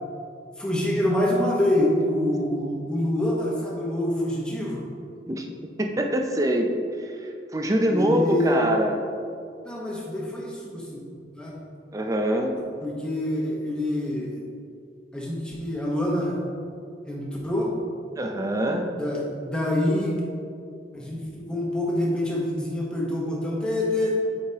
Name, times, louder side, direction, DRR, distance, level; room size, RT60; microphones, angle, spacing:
voice 1, 0.6-4.8 7.9-8.6 9.6-11.6 12.8-14.4 15.1-16.4 17.0-17.7 19.0-20.2 20.9-24.2, left 1 dB, 5° left, -4 dB, 1.0 m, -26 dB
voice 2, 5.8-6.7 7.0-9.0 11.9-12.6 18.2-18.9, equal, 20° right, 3 dB, 0.5 m, -24 dB
8.2 x 4.8 x 2.9 m, 2.3 s
head